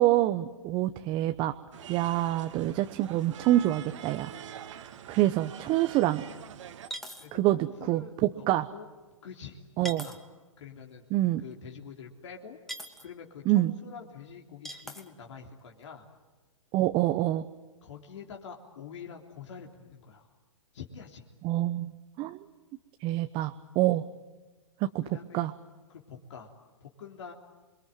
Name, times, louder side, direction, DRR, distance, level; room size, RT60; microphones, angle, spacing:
voice 1, 0.0-1.5 1.9-4.3 4.7-6.2 7.3-8.6 9.8-10.1 11.1-11.4 13.5-13.7 16.7-17.4 21.4-22.4 23.0-24.0 24.8-25.0 25.3-25.5, right 15 dB, 30° right, 9 dB, 1.0 m, -26 dB
sound 1, 1.7-6.9, right 9 dB, 65° right, 2.2 m, -45 dB
sound 2, 5.4-5.5 6.9-7.3 9.9-10.2 12.7-13.1 14.7-15.1, equal, ahead, 2.5 m, -40 dB
voice 2, 7.2-8.5 8.7-8.9 9.2-10.2 10.6-11.0 11.4-12.6 13.0-16.1 17.8-20.3 20.7-21.2 25.0-25.5 25.9-26.5 26.8-27.3, left 6 dB, 60° left, 1 dB, 3.6 m, -46 dB
28.5 x 23.0 x 9.2 m, 1.2 s
hypercardioid pair, 130°, 17 cm